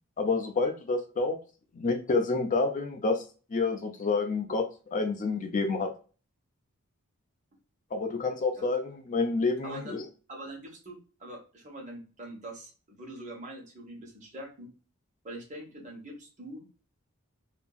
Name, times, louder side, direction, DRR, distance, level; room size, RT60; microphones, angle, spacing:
voice 1, 0.2-1.4 1.8-3.2 3.5-5.9 7.9-10.0, left 3 dB, 35° left, 4 dB, 0.4 m, -28 dB
voice 2, 9.6-10.0 10.3-14.7 15.2-16.6, right 1 dB, 35° right, -1 dB, 1.0 m, -43 dB
2.8 x 2.6 x 2.3 m, 0.35 s
head